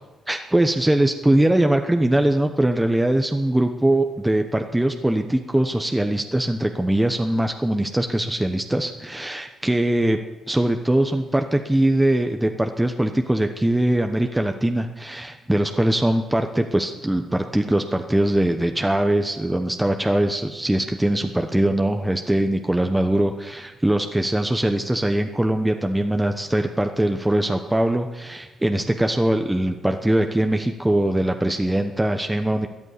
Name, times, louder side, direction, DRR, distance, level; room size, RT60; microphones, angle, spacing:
voice 1, 0.3-10.2 10.5-32.7, right 1 dB, 10° right, 5 dB, 1.0 m, -21 dB
14.0 x 9.6 x 9.7 m, 1.2 s
cardioid pair, 90°, 0 cm